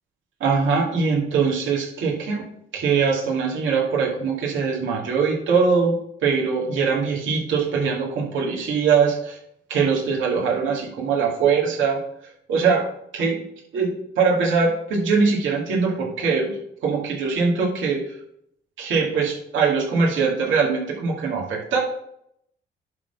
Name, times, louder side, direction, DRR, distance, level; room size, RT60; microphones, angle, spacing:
voice 1, 0.4-2.4 2.7-6.0 6.2-9.4 9.7-12.0 12.5-12.9 13.1-13.4 13.7-18.1 18.8-21.8, right 5 dB, 75° right, -3 dB, 2.5 m, -22 dB
11.0 x 4.1 x 5.5 m, 0.72 s
cardioid pair, 90°, 20 cm